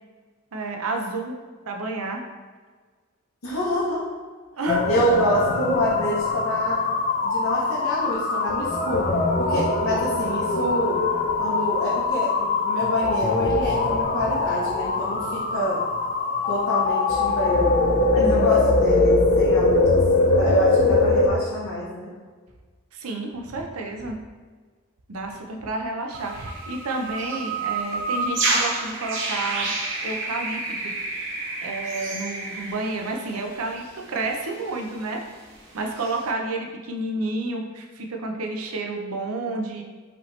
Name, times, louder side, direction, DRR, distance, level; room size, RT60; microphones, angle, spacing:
voice 1, 0.5-1.3 1.7-2.2 4.6-4.9 18.2-18.7 22.9-24.2 25.1-29.7 30.0-30.9 31.6-35.2 35.7-39.8, right 2 dB, 75° right, 2 dB, 0.6 m, -30 dB
voice 2, 3.4-4.0 4.9-6.8 7.2-9.1 9.4-11.0 11.4-15.8 16.5-17.7 18.1-22.1, equal, 75° left, -7 dB, 0.9 m, -27 dB
sound 1, 4.7-21.3, left 3 dB, 40° left, 0.4 m, -22 dB
sound 2, 26.1-33.3 33.6-33.9 34.4-34.8 35.9-36.2, right 3 dB, 60° right, 0.9 m, -29 dB
5.1 x 2.9 x 3.2 m, 1.4 s
head